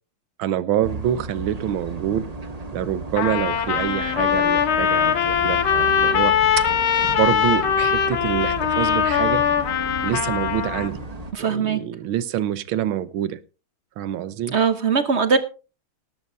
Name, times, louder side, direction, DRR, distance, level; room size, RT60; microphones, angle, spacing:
voice 1, 0.4-2.2 2.7-6.6 7.0-9.4 10.0-11.0 11.4-13.4 14.0-14.5, right 11 dB, 75° right, 15 dB, 1.6 m, -26 dB
sound 1, 0.8-11.3, right 2 dB, 25° right, 1.0 m, -35 dB
Trumpet, 3.2-10.9, left 8 dB, 70° left, 2.1 m, -21 dB
voice 2, 11.3-11.8 14.5-15.4, right 5 dB, 55° right, 10 dB, 0.7 m, -20 dB
18.5 x 12.0 x 2.7 m, 0.33 s
omnidirectional pair, 2.4 m